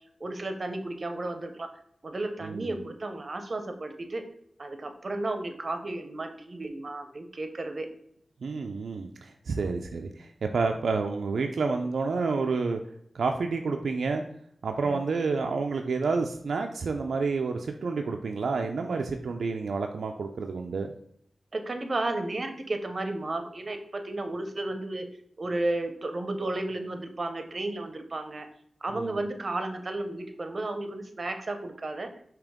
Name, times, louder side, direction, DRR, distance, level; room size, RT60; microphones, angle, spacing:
voice 1, 0.2-1.7 2.0-4.3 4.6-7.9 9.6-9.8 14.8-15.0 21.5-25.1 25.4-28.5 28.8-32.1, right 2 dB, 50° right, 7 dB, 0.7 m, -33 dB
voice 2, 2.4-2.8 8.4-12.8 13.1-14.2 14.6-20.9 28.9-29.1, right 4 dB, 85° right, 3 dB, 0.3 m, -29 dB
5.1 x 2.8 x 3.6 m, 0.68 s
cardioid pair, 55°, 0 cm